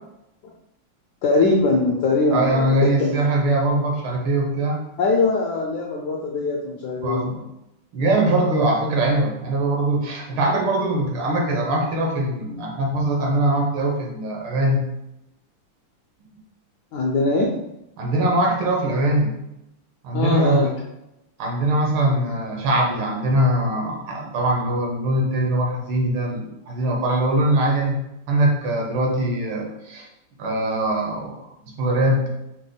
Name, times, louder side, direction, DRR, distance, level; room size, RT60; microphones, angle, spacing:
voice 1, 1.2-2.6 3.0-3.2 5.0-7.3 16.9-17.6 20.1-20.8, left 3 dB, 75° left, -1 dB, 0.9 m, -21 dB
voice 2, 2.3-4.8 7.0-7.4 7.9-14.9 18.0-19.3 20.0-20.7 21.4-28.0 28.3-30.1 30.4-31.4 31.6-32.3, right 1 dB, 75° right, 0 dB, 1.8 m, -22 dB
5.3 x 2.1 x 3.9 m, 0.87 s
omnidirectional pair, 2.4 m